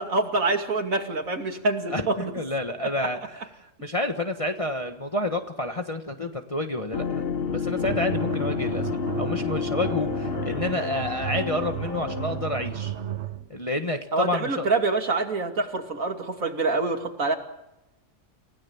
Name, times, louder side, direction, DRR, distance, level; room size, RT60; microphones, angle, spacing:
voice 1, 0.0-2.3 14.1-17.4, right 3 dB, 75° right, 5 dB, 3.0 m, -26 dB
voice 2, 2.3-7.2 7.5-8.9 9.2-12.9 13.5-14.7, left 2 dB, 25° left, 5 dB, 1.5 m, -29 dB
sound 1, 6.9-12.7, left 6 dB, 50° left, 1.1 m, -30 dB
sound 2, 7.8-13.5, right 10 dB, 60° right, 1.2 m, -34 dB
29.5 x 17.0 x 7.2 m, 0.96 s
omnidirectional pair, 1.4 m